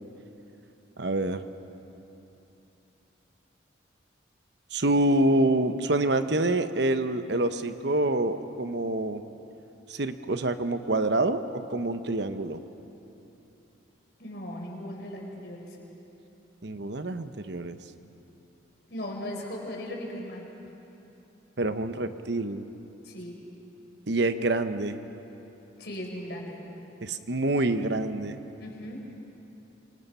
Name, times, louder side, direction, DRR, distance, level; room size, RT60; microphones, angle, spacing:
voice 1, 1.0-1.4 4.7-9.2 9.9-12.6 16.6-17.8 21.6-22.6 24.1-25.0 27.0-28.4, right 2 dB, 60° right, 10 dB, 0.9 m, -26 dB
voice 2, 14.2-15.8 18.9-20.5 23.0-23.4 25.8-26.6 28.6-29.0, left 1 dB, 60° left, 0 dB, 4.4 m, -37 dB
27.0 x 25.5 x 5.6 m, 3.0 s
head